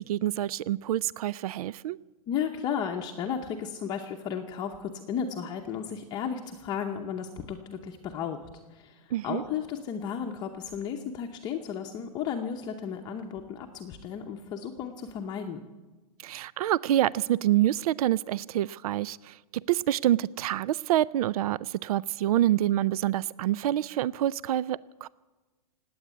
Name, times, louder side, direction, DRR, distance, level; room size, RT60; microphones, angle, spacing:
voice 1, 0.0-2.0 9.1-9.4 16.2-19.4 19.7-25.1, right 13 dB, 70° right, 22 dB, 0.4 m, -27 dB
voice 2, 2.3-8.4 8.7-15.6, left 7 dB, 20° left, 2 dB, 0.8 m, -34 dB
19.0 x 8.7 x 8.3 m, 1.2 s
supercardioid pair, 160°, 20 cm